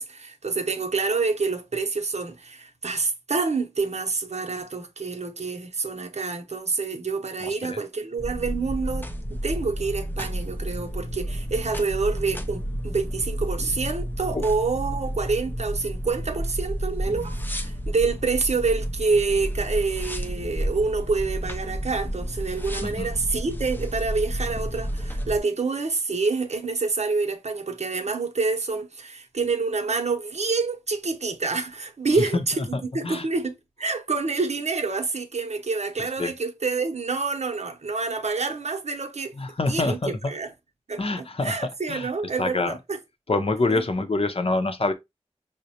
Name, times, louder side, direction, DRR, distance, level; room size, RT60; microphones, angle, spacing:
voice 1, 0.0-39.3 39.7-40.5 40.9-43.0 43.7-43.8, right 4 dB, 70° right, 0.7 m, -27 dB
voice 2, 7.4-7.8 14.3-14.4 22.8-23.1 32.1-32.2 32.7-33.3 36.2-36.3 39.4-40.3 41.0-41.6 41.9-42.1 42.4-42.7 43.3-44.9, left 2 dB, 55° left, 0.7 m, -26 dB
sound 1, 8.2-25.4, equal, 15° left, 0.5 m, -31 dB
5.1 x 2.1 x 2.8 m
cardioid pair, 40°, 12 cm